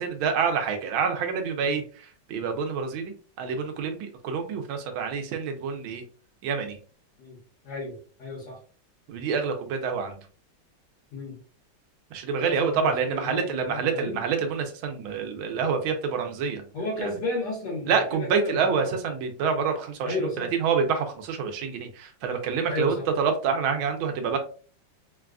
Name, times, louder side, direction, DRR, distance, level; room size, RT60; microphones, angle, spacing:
voice 1, 0.0-1.8 2.3-3.1 3.4-6.0 6.4-6.8 9.1-10.2 12.1-16.6 17.0-17.1 17.9-24.4, right 6 dB, 85° right, 5 dB, 1.5 m, -27 dB
voice 2, 7.6-8.6 11.1-11.4 12.4-14.2 16.7-19.0 20.0-20.5 22.7-23.1, left 2 dB, 60° left, -8 dB, 1.6 m, -33 dB
3.9 x 2.3 x 2.4 m, 0.40 s
omnidirectional pair, 2.1 m